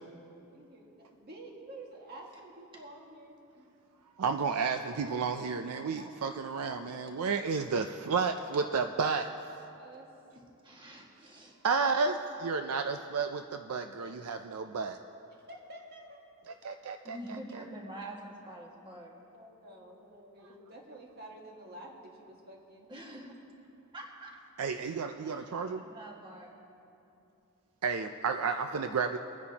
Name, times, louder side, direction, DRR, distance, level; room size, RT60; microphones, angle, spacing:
voice 1, 0.4-3.7 5.9-7.0 9.7-10.1 14.0-14.5 15.5-16.5 19.3-22.9, right 1 dB, 45° right, -1 dB, 1.8 m, -50 dB
voice 2, 4.2-9.3 11.6-15.0 16.6-17.4 24.6-25.8 27.8-29.2, right 5 dB, 70° right, 6 dB, 0.5 m, -32 dB
voice 3, 10.3-11.6 17.0-19.1 22.9-23.5 23.9-24.4 25.2-26.5, right 1 dB, 20° right, -2 dB, 1.8 m, -46 dB
25.5 x 9.8 x 2.9 m, 2.8 s
head